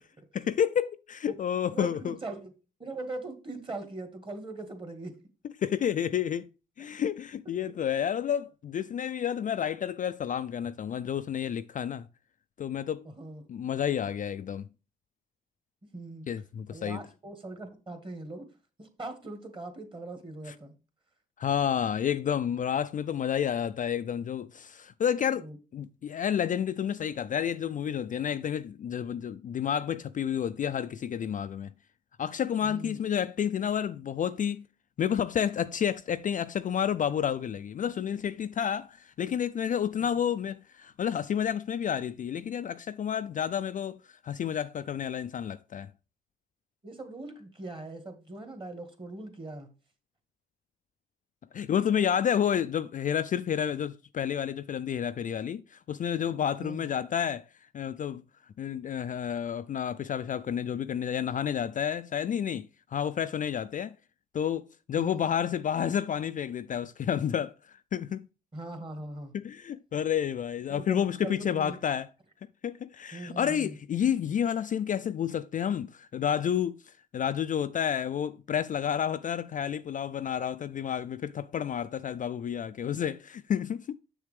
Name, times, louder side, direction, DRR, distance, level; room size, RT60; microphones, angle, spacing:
voice 1, 0.3-2.2 5.6-6.5 6.8-12.1 12.6-13.1 13.5-14.7 16.3-17.0 21.4-25.5 25.7-31.7 32.2-34.6 35.0-45.9 51.5-57.4 57.7-58.2 58.6-63.9 64.3-68.3 69.3-72.1 72.6-76.8 77.1-83.9, left 9 dB, 40° left, 0.4 m, -30 dB
voice 2, 1.7-2.5 2.8-5.2 7.6-7.7 13.0-13.4 15.8-16.3 16.7-18.5 18.8-20.8 25.4-25.6 32.6-33.0 40.0-40.1 46.8-49.7 56.6-56.8 65.0-65.2 68.5-69.3 70.7-71.8 73.1-73.8, right 2 dB, 25° right, 1.9 m, -41 dB
7.2 x 6.6 x 3.4 m
cardioid pair, 90°, 20 cm